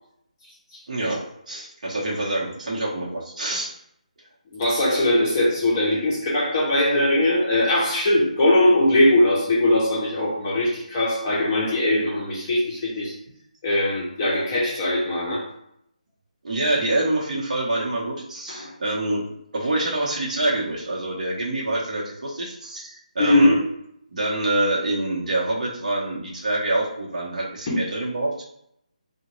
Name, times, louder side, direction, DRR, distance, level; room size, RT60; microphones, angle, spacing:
voice 1, 0.9-3.7 16.4-19.2 19.5-23.6 24.1-28.4, right 2 dB, 60° right, -5 dB, 0.8 m, -26 dB
voice 2, 4.5-13.1 13.6-15.4 18.5-18.7 23.2-23.6 27.7-27.8, left 1 dB, 25° left, -6 dB, 0.6 m, -20 dB
3.7 x 2.1 x 3.0 m, 0.74 s
hypercardioid pair, 170°, 4 cm